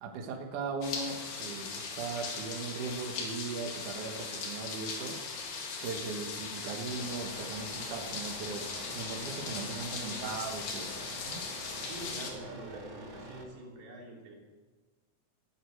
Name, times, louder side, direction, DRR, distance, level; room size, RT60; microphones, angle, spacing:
voice 1, 0.0-5.1 5.8-8.7 8.9-11.5, right 4 dB, 65° right, 2 dB, 2.6 m, -39 dB
sound 1, 0.8-12.3, left 4 dB, 65° left, 3.7 m, -39 dB
voice 2, 6.0-6.5 10.0-10.3 11.8-14.3, right 2 dB, 80° right, -2 dB, 5.1 m, -46 dB
sound 2, 6.9-13.4, right 1 dB, 40° right, 2.2 m, -47 dB
14.5 x 10.5 x 7.9 m, 1.3 s
omnidirectional pair, 4.3 m